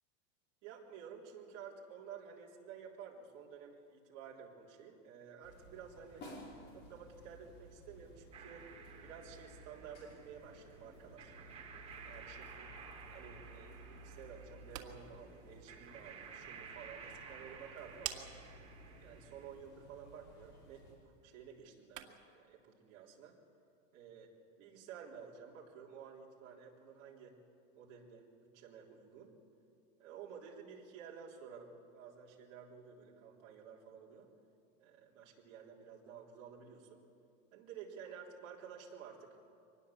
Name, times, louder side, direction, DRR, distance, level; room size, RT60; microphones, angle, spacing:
voice 1, 0.6-6.3 6.7-8.7 9.0-11.4 12.0-12.7 13.1-18.4 19.0-23.4 23.9-27.4 27.7-29.3 30.0-34.3 34.8-37.0 37.5-39.3, right 7 dB, 35° right, -3 dB, 3.5 m, -52 dB
sound 1, 5.4-21.0, equal, 25° left, 5.2 m, -57 dB
sound 2, 8.3-19.5, right 6 dB, 15° right, 1.6 m, -54 dB
sound 3, 14.4-22.4, right 11 dB, 70° right, 2.1 m, -52 dB
24.0 x 20.0 x 7.2 m, 2.4 s
supercardioid pair, 170°, 41 cm